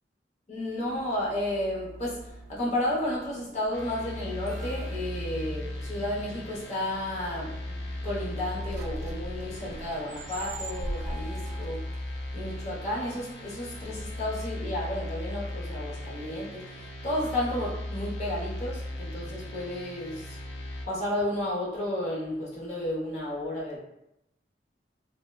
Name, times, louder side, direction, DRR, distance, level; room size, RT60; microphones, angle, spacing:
voice 1, 0.5-7.7 8.0-11.9 12.3-20.4 20.9-23.8, left 1 dB, 40° left, -5 dB, 0.8 m, -32 dB
sound 1, 0.9-14.5, right 2 dB, 40° right, 0.3 m, -44 dB
sound 2, 3.7-20.9, left 1 dB, 90° left, 0.5 m, -37 dB
3.3 x 2.1 x 2.3 m, 0.85 s
head